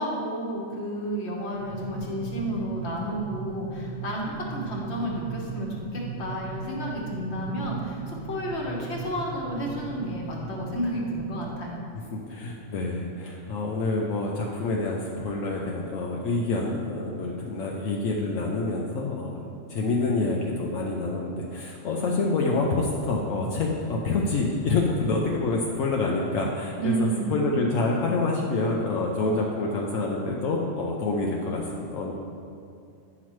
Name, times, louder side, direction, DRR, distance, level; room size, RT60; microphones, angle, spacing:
voice 1, 0.0-11.8 26.8-27.4, right 1 dB, 55° left, -2 dB, 1.4 m, -31 dB
sound 1, 1.6-11.5, right 4 dB, 50° right, 1.0 m, -38 dB
voice 2, 12.1-32.1, left 3 dB, 80° left, -1 dB, 1.0 m, -27 dB
9.7 x 5.8 x 3.1 m, 2.5 s
omnidirectional pair, 1.3 m